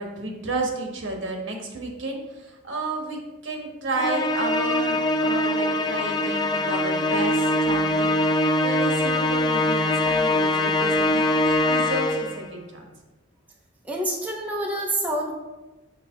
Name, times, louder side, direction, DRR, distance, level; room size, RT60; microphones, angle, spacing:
voice 1, 0.0-8.2 8.6-12.9, right 2 dB, 65° right, 1 dB, 1.4 m, -31 dB
Musical instrument, 4.0-12.5, left 1 dB, 20° left, 0.4 m, -23 dB
voice 2, 13.9-15.3, right 1 dB, 10° right, -2 dB, 0.7 m, -27 dB
6.8 x 3.8 x 5.8 m, 1.1 s
head